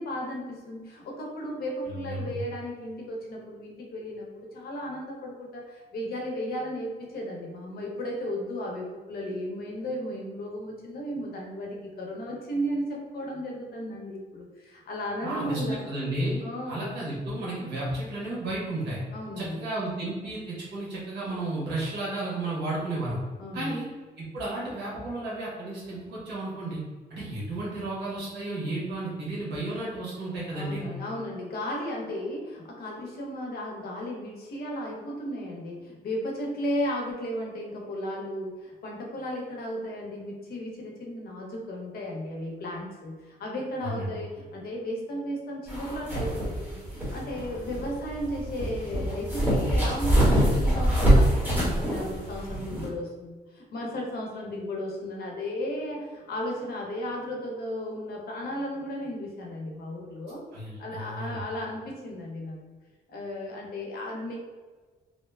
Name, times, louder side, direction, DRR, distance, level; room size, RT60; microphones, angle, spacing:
voice 1, 0.0-15.8 16.4-16.9 19.1-19.7 23.4-23.8 30.5-60.4 60.8-62.6 63.1-64.4, equal, 60° left, -1 dB, 0.7 m, -35 dB
voice 2, 2.1-2.4 15.2-16.4 16.7-19.0 19.4-23.2 23.5-23.9 24.2-26.8 27.1-30.8 43.8-44.1 60.5-61.4, right 2 dB, 80° right, -6 dB, 1.1 m, -33 dB
sound 1, 45.7-52.9, right 1 dB, 10° right, 1.0 m, -24 dB
2.7 x 2.1 x 2.2 m, 1.4 s
cardioid pair, 120°, 17 cm